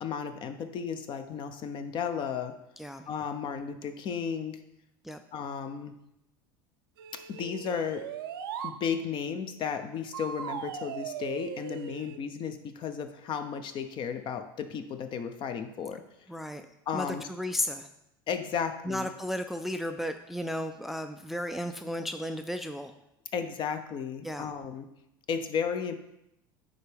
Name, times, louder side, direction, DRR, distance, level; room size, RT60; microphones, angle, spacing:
voice 1, 0.0-2.5 3.1-4.6 5.3-5.9 7.1-8.1 8.6-16.0 16.9-17.2 18.3-19.1 23.3-24.9 25.3-26.0, left 7 dB, 45° left, 8 dB, 0.7 m, -34 dB
voice 2, 2.8-3.1 5.0-5.2 16.3-16.6 16.9-17.9 18.8-22.9 24.2-24.5, left 1 dB, ahead, 8 dB, 0.3 m, -34 dB
sound 1, 7.0-8.8 10.1-12.2, right 8 dB, 85° right, 0.5 m, -39 dB
9.3 x 3.6 x 3.5 m, 0.84 s
hypercardioid pair, 90°, 12 cm